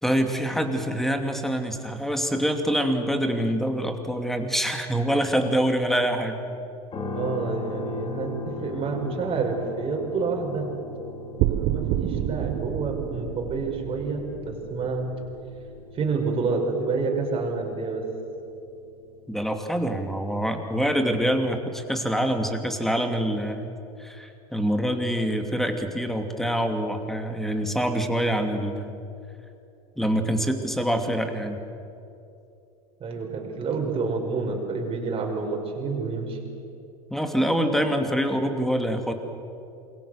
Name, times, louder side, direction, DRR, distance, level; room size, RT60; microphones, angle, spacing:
voice 1, 0.0-6.4 19.3-23.7 24.0-28.9 30.0-31.6 37.1-39.1, equal, ahead, 5 dB, 2.8 m, -25 dB
sound 1, 6.9-20.9, left 2 dB, 30° left, 3.7 m, -39 dB
voice 2, 7.1-10.8 11.5-15.1 15.9-18.0 33.0-36.4, right 4 dB, 30° right, 1 dB, 5.9 m, -28 dB
sound 2, 11.4-15.8, right 13 dB, 50° right, 1.2 m, -29 dB
28.0 x 22.5 x 6.7 m, 2.7 s
hypercardioid pair, 90°, 19 cm